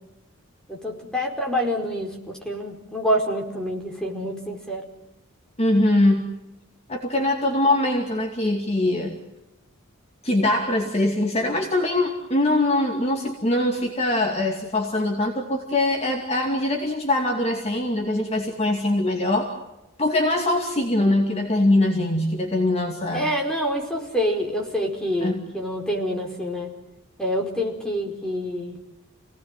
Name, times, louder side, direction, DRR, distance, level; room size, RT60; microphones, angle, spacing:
voice 1, 0.7-4.8 23.1-26.7 27.2-28.7, equal, 5° left, 0 dB, 4.8 m, -27 dB
voice 2, 5.6-6.3 6.9-9.2 10.2-19.5 20.0-23.3 25.2-25.4, left 1 dB, 30° left, 2 dB, 2.5 m, -22 dB
29.0 x 18.5 x 9.1 m, 0.93 s
head